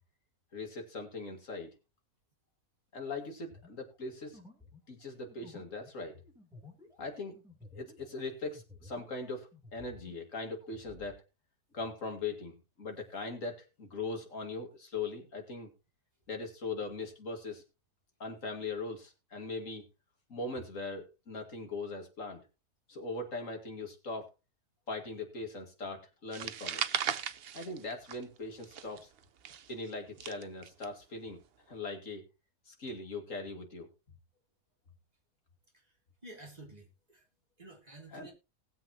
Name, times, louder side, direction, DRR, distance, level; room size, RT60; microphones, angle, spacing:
voice 1, 0.5-1.8 2.9-4.4 4.9-6.2 7.0-7.4 7.7-11.2 11.7-15.7 16.3-17.6 18.2-19.9 20.3-22.5 22.9-24.3 24.9-26.8 27.5-29.1 29.7-32.2 32.7-33.9 38.1-38.3, left 3 dB, 55° left, 2.7 m, -40 dB
sound 1, 3.5-9.3 9.5-11.1, left 2 dB, ahead, 3.4 m, -55 dB
sound 2, 26.3-28.4 28.6-30.8, right 8 dB, 55° right, 0.7 m, -37 dB
voice 2, 36.2-37.2 37.6-38.3, right 2 dB, 25° right, 2.9 m, -51 dB
19.5 x 7.6 x 3.0 m
omnidirectional pair, 1.7 m